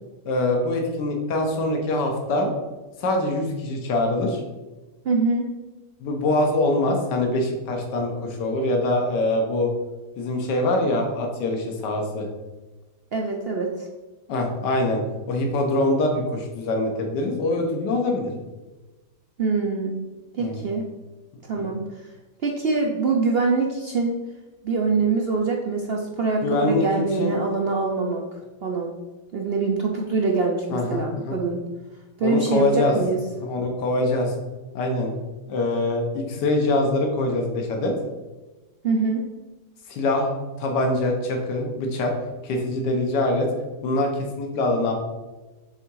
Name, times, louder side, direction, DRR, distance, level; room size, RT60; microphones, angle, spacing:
voice 1, 0.2-2.5 3.0-4.4 6.0-9.7 10.2-12.3 14.3-15.0 15.3-18.3 20.4-20.6 26.4-26.9 27.2-27.3 30.7-31.4 32.2-32.9 33.4-34.3 34.7-35.1 35.5-37.9 39.9-40.3 40.6-42.1 42.4-43.5 43.8-44.9, left 2 dB, 80° left, 2 dB, 1.6 m, -24 dB
voice 2, 5.0-5.5 13.1-13.9 19.4-20.0 20.3-20.9 21.5-21.9 22.4-24.2 24.6-28.2 28.6-28.9 29.3-31.6 32.2-33.2 38.8-39.2, right 4 dB, 65° right, 1 dB, 0.5 m, -24 dB
6.9 x 3.6 x 4.6 m, 1.2 s
omnidirectional pair, 1.8 m